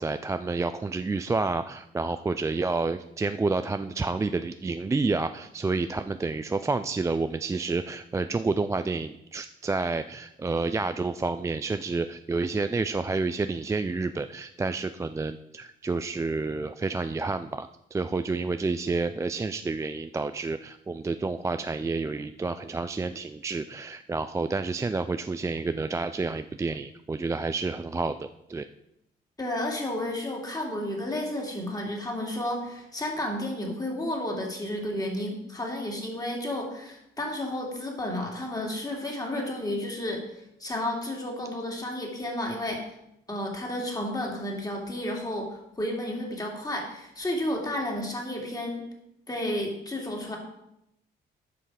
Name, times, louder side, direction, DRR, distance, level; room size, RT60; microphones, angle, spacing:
voice 1, 0.0-28.7, right 3 dB, 15° right, 10 dB, 0.3 m, -29 dB
voice 2, 29.4-40.2 40.6-42.8 43.3-48.9 49.3-50.4, left 1 dB, 20° left, 0 dB, 2.5 m, -32 dB
10.0 x 5.6 x 4.8 m, 0.81 s
cardioid pair, 90°, 20 cm